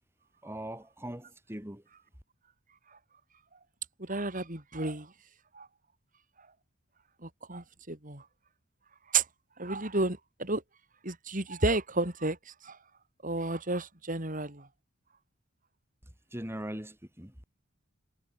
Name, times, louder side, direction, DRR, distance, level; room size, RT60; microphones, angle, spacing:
voice 1, 0.4-1.8 16.3-17.3, right 1 dB, 10° right, 3.9 m, -40 dB
voice 2, 4.0-5.1 5.5-5.7 7.2-8.2 9.1-9.3 9.6-10.6 11.0-12.8 13.2-14.7, right 3 dB, 40° right, 3.9 m, -32 dB
head